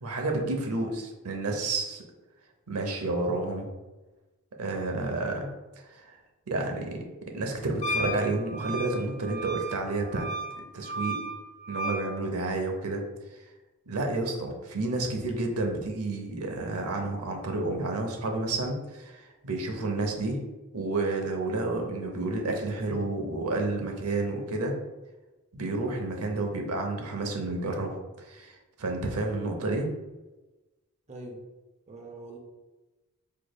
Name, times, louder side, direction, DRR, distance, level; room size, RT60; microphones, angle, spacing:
voice 1, 0.0-2.0 2.7-3.7 4.6-5.5 5.8-6.2 6.5-7.0 7.3-10.3 10.5-11.2 11.7-13.0 13.3-13.5 13.9-20.4 20.7-24.7 25.5-29.9, right 2 dB, 85° right, 2 dB, 0.7 m, -30 dB
Wind instrument woodwind instrument, 7.8-12.1, right 1 dB, 35° left, 0.4 m, -34 dB
voice 2, 31.1-31.4 31.9-32.4, right 2 dB, 30° right, 0 dB, 0.5 m, -42 dB
4.7 x 3.0 x 2.2 m, 1.1 s
head